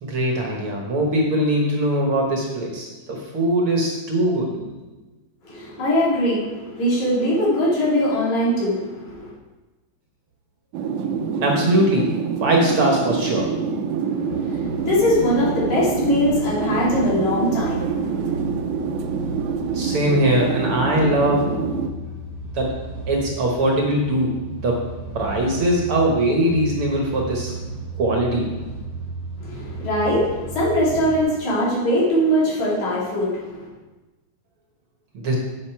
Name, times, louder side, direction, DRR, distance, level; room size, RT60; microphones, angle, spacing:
voice 1, 0.0-4.7 11.4-12.0 12.4-13.5 19.7-21.4 22.5-22.7 23.1-24.3 24.6-24.8 25.1-27.5 28.0-28.5 35.1-35.4, right 1 dB, 55° right, 0 dB, 1.9 m, -21 dB
voice 2, 5.4-9.3 14.0-18.4 29.4-33.7, equal, 75° left, -7 dB, 4.2 m, -22 dB
sound 1, 10.7-21.9, right 6 dB, 80° right, 2.1 m, -26 dB
sound 2, 14.3-31.2, right 2 dB, 25° left, 2.3 m, -34 dB
9.5 x 7.4 x 4.6 m, 1.2 s
omnidirectional pair, 3.3 m